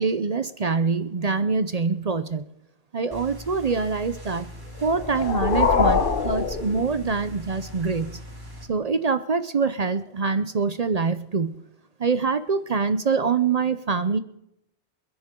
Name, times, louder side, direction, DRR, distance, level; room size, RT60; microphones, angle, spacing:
voice 1, 0.0-2.4 2.9-4.5 4.8-8.2 8.7-11.6 12.0-14.2, right 5 dB, 45° right, 12 dB, 0.6 m, -24 dB
sound 1, 3.1-8.6, equal, 20° right, 2.3 m, -41 dB
sound 2, 4.8-7.4, left 5 dB, 50° left, 1.1 m, -24 dB
28.5 x 10.5 x 3.7 m, 0.84 s
omnidirectional pair, 1.2 m